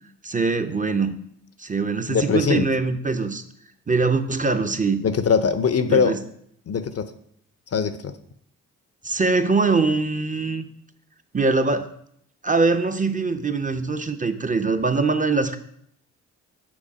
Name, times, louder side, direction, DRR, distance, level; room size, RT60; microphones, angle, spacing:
voice 1, 0.2-1.1 1.6-3.4 3.9-5.0 5.9-6.2 9.0-10.7 11.3-11.9 12.4-15.6, right 3 dB, 20° right, 8 dB, 0.7 m, -22 dB
voice 2, 2.1-2.7 5.0-6.2 6.7-7.1 7.7-8.1, left 6 dB, 40° left, 12 dB, 0.6 m, -21 dB
6.1 x 3.9 x 4.9 m, 0.69 s
hypercardioid pair, 40°, 37 cm